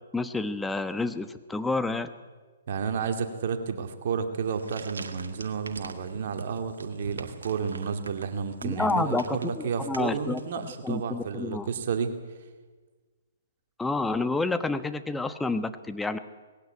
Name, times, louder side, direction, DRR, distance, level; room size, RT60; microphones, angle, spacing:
voice 1, 0.1-2.1 8.6-10.4 10.8-11.7 13.8-16.2, left 3 dB, 5° left, 10 dB, 1.0 m, -29 dB
voice 2, 2.7-12.1, right 6 dB, 55° right, 7 dB, 2.3 m, -31 dB
sound 1, 4.4-11.0, right 4 dB, 80° right, 1.9 m, -44 dB
19.0 x 16.5 x 9.4 m, 1.4 s
hypercardioid pair, 130°, 0 cm